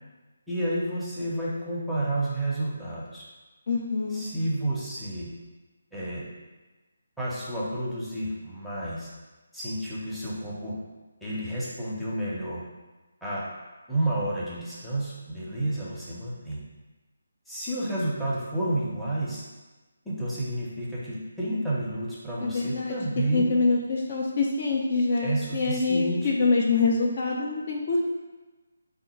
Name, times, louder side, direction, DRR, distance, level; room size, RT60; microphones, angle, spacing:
voice 1, 0.5-3.2 4.1-5.3 5.9-6.2 7.2-9.1 9.5-10.7 11.2-12.6 13.2-13.4 13.9-16.6 17.5-19.4 20.0-23.5 25.2-26.3, right 1 dB, ahead, -9 dB, 0.7 m, -30 dB
voice 2, 3.7-4.3 22.4-22.9 23.3-28.1, left 3 dB, 45° left, -1 dB, 0.5 m, -25 dB
3.5 x 2.5 x 4.1 m, 1.2 s
figure-of-eight pair, 150°, 0 cm